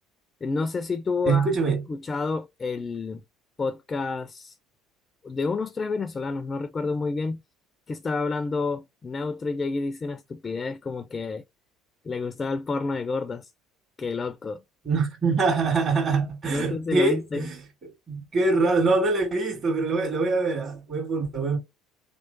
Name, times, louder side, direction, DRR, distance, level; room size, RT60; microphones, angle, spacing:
voice 1, 0.4-3.2 3.6-4.5 5.2-7.4 7.9-11.4 12.0-13.5 14.0-14.6 16.5-17.5, left 4 dB, 30° left, 0.3 m, -29 dB
voice 2, 1.2-1.8 14.8-17.6 18.1-21.6, right 3 dB, 45° right, 1.7 m, -24 dB
3.1 x 3.1 x 2.6 m
hypercardioid pair, 65°, 0 cm